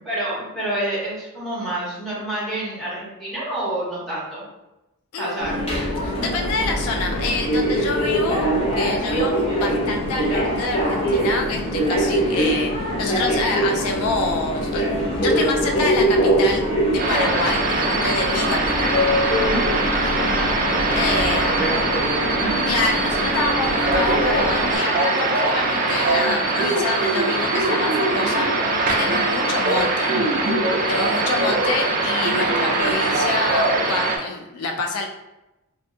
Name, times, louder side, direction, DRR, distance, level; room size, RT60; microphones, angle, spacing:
voice 1, 0.0-4.4 5.2-5.6 20.2-20.7 21.2-22.6, right 1 dB, ahead, -9 dB, 0.9 m, -28 dB
voice 2, 5.1-5.7 6.0-8.5 8.8-12.7 13.0-14.9 15.2-19.0 20.9-21.5 22.7-28.5 28.9-30.1 30.9-35.1, left 3 dB, 75° left, 3 dB, 0.3 m, -27 dB
Subway metro underground, 5.4-24.8, equal, 25° left, 0.6 m, -23 dB
sound 1, 17.0-34.2, right 2 dB, 40° right, 0.4 m, -22 dB
2.6 x 2.3 x 2.5 m, 0.96 s
head